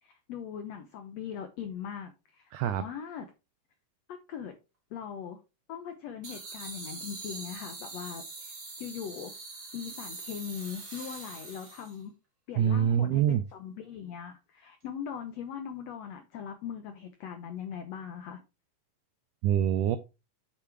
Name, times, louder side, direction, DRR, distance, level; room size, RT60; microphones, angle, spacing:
voice 1, 0.0-3.3 4.1-4.5 4.9-5.4 5.7-9.3 9.7-12.1 12.5-18.4, left 8 dB, 85° left, 1.5 m, -40 dB
voice 2, 2.5-2.8 12.6-13.4 19.4-20.0, right 9 dB, 90° right, 1.7 m, -25 dB
sound 1, 6.2-12.0, right 3 dB, 30° right, 2.3 m, -43 dB
7.4 x 6.9 x 3.3 m
omnidirectional pair, 4.2 m